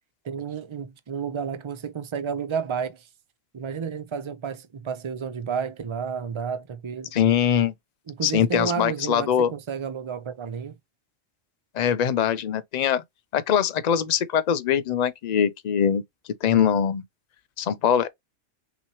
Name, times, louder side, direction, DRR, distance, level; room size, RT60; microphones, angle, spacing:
voice 1, 0.2-3.1 3.5-7.1 8.1-10.8, right 6 dB, 40° right, 0.4 m, -31 dB
voice 2, 7.1-7.7 8.2-9.5 11.7-13.0 13.3-16.0 16.4-17.0 17.6-18.1, left 8 dB, 85° left, 0.3 m, -22 dB
5.9 x 3.1 x 2.9 m
omnidirectional pair, 1.3 m